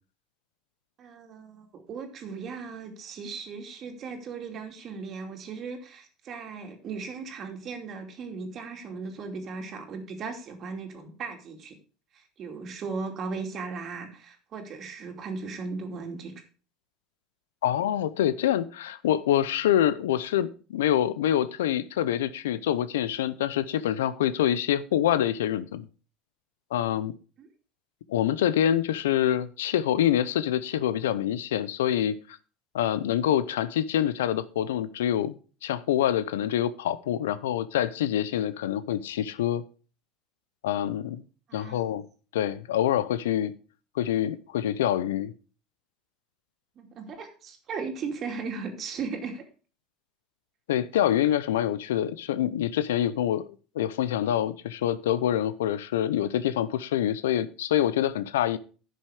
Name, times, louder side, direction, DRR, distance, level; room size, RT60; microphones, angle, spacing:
voice 1, 1.0-11.7 12.1-16.3 27.4-27.5 41.5-41.8 46.8-49.4, right 4 dB, 45° right, 2.6 m, -37 dB
voice 2, 17.6-25.9 26.7-27.1 28.1-32.2 32.7-35.4 35.6-39.6 40.6-41.2 41.5-42.0 42.3-43.5 43.9-45.3 50.7-53.4 53.7-58.6, left 11 dB, 90° left, 0.7 m, -26 dB
11.0 x 6.4 x 5.0 m
hypercardioid pair, 90°, 0 cm